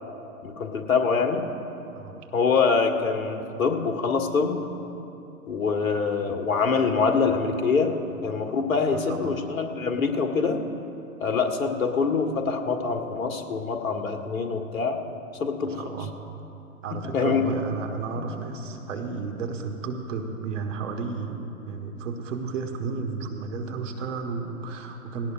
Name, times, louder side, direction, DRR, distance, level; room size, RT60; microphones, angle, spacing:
voice 1, 0.4-1.4 2.3-4.6 5.5-7.9 8.2-10.6 11.2-15.0 15.4-15.8 17.0-17.4, left 5 dB, 65° left, 4 dB, 1.6 m, -24 dB
voice 2, 9.0-9.3 15.6-16.1 16.8-25.3, right 4 dB, 55° right, 4 dB, 1.5 m, -33 dB
18.5 x 17.5 x 2.5 m, 2.9 s
figure-of-eight pair, 115°, 44 cm